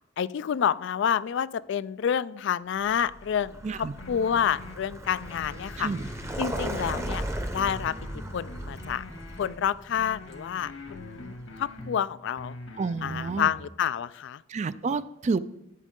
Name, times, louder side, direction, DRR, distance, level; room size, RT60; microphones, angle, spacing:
voice 1, 0.2-5.9 6.4-7.9 8.3-9.0 9.4-11.3 11.6-12.6 13.0-14.4, left 8 dB, 65° left, 17 dB, 0.3 m, -28 dB
Vehicle, 2.9-11.7, right 1 dB, 15° right, 0.8 m, -37 dB
sound 1, 4.0-4.8 5.2-7.2 7.6-9.6 10.0-12.0 12.4-13.6, left 2 dB, 90° left, 2.0 m, -43 dB
voice 2, 5.8-6.1 12.8-13.5 14.5-15.4, right 4 dB, 35° right, 15 dB, 0.4 m, -29 dB
13.5 x 8.3 x 3.7 m, 0.85 s
head